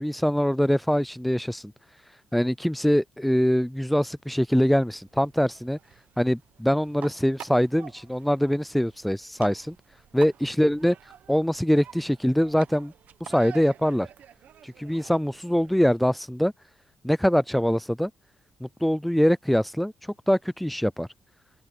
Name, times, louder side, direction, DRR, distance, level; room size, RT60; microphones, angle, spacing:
voice 1, 0.0-1.7 2.3-5.8 6.2-9.8 10.1-11.0 11.3-12.9 13.2-14.1 14.6-16.5 17.0-18.1 18.6-19.9 20.3-21.1, equal, ahead, 0.4 m, -23 dB
sound 1, 4.5-16.0, right 10 dB, 60° right, 1.0 m, -48 dB
open air
cardioid pair, 145°, 3 cm